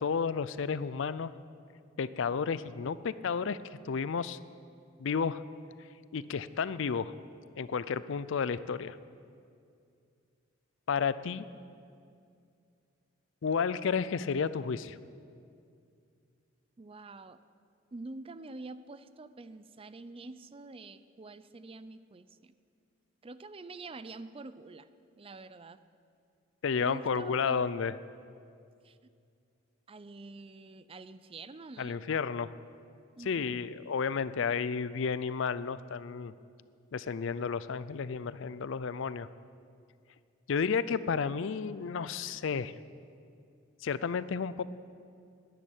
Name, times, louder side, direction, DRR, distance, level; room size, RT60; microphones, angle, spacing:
voice 1, 0.0-1.3 2.0-3.6 3.9-4.4 5.0-5.4 6.1-7.1 7.6-9.0 10.9-11.5 13.4-15.0 26.6-27.9 31.8-32.5 33.3-36.3 36.9-39.3 40.5-42.7 43.8-44.6, left 6 dB, 65° left, 16 dB, 0.4 m, -32 dB
voice 2, 16.8-17.4 17.9-22.5 23.2-24.9 25.2-25.8 26.8-27.6 28.8-29.0 29.9-32.0 33.1-33.6, right 3 dB, 30° right, 13 dB, 0.5 m, -46 dB
11.0 x 10.5 x 10.0 m, 2.4 s
head